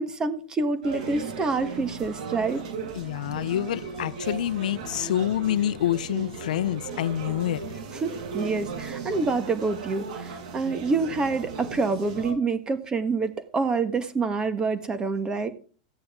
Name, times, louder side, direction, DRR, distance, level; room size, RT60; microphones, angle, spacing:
voice 1, 0.0-2.6 7.9-8.1 8.3-15.5, right 4 dB, 20° right, 1.4 m, -27 dB
sound 1, 0.8-12.3, right 5 dB, 65° right, 7.7 m, -36 dB
voice 2, 3.0-7.6, left 11 dB, 80° left, 0.6 m, -27 dB
14.5 x 9.7 x 3.6 m
supercardioid pair, 135°, 4 cm